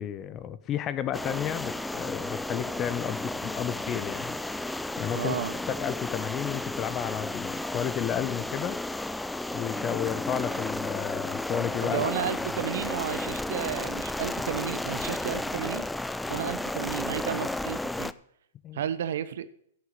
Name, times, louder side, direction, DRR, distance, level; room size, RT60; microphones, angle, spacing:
voice 1, 0.0-4.4 5.0-5.4 5.7-8.8 9.5-12.1 18.6-18.8, left 10 dB, 30° left, 15 dB, 0.8 m, -32 dB
sound 1, 1.1-18.1, left 2 dB, 5° left, 0.4 m, -33 dB
voice 2, 5.1-5.5 11.8-15.9 16.3-18.1 18.7-19.5, right 9 dB, 65° right, 14 dB, 1.0 m, -32 dB
11.0 x 6.7 x 7.9 m, 0.70 s
hypercardioid pair, 115°, 0 cm